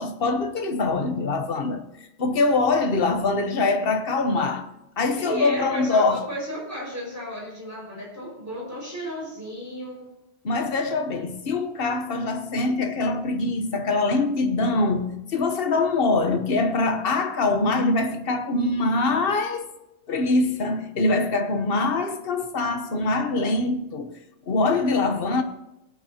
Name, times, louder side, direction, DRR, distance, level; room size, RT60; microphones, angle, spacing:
voice 1, 0.0-1.8 2.2-4.7 5.0-6.2 10.4-19.7 20.1-24.1 24.5-25.4, left 3 dB, 55° left, 1.3 m, -23 dB
voice 2, 5.2-10.1, equal, 15° right, 5.4 m, -33 dB
18.0 x 9.6 x 2.9 m
omnidirectional pair, 1.2 m